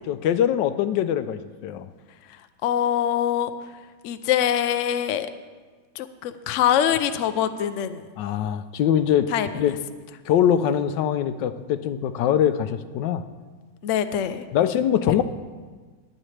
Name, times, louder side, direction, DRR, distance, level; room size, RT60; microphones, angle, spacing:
voice 1, 0.1-1.9 8.2-9.3 9.5-9.8 10.3-13.2 14.5-15.2, left 9 dB, 85° left, 12 dB, 1.3 m, -22 dB
voice 2, 2.6-3.5 4.0-5.3 6.0-8.1 9.3-9.5 13.8-14.5 15.1-15.2, left 10 dB, 70° left, 10 dB, 0.7 m, -23 dB
20.0 x 8.7 x 3.3 m, 1.4 s
omnidirectional pair, 1.9 m